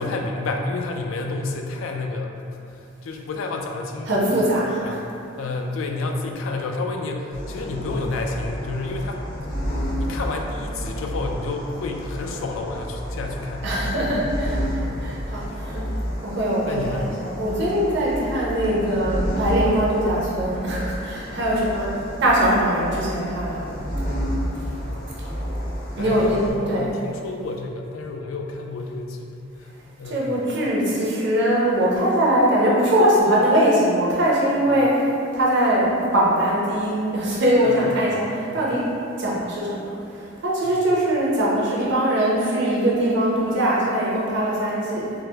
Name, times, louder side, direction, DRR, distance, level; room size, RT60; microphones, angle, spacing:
voice 1, 0.0-4.3 4.8-5.0 5.4-9.2 10.0-13.7 14.0-14.1 14.9-15.5 16.6-17.1 24.8-25.2 26.0-29.7 30.0-30.2 37.6-38.0 38.5-38.6 40.6-40.7, left 3 dB, 80° left, 2 dB, 0.3 m, -30 dB
voice 2, 4.1-5.0 13.6-15.9 16.2-21.9 22.2-23.8 26.0-26.4 26.7-26.9 30.0-38.2 38.5-38.9 39.2-45.1, right 1 dB, 60° right, -5 dB, 0.7 m, -21 dB
sound 1, 7.3-26.5, equal, 45° left, 0.7 m, -30 dB
3.9 x 2.0 x 2.8 m, 2.6 s
head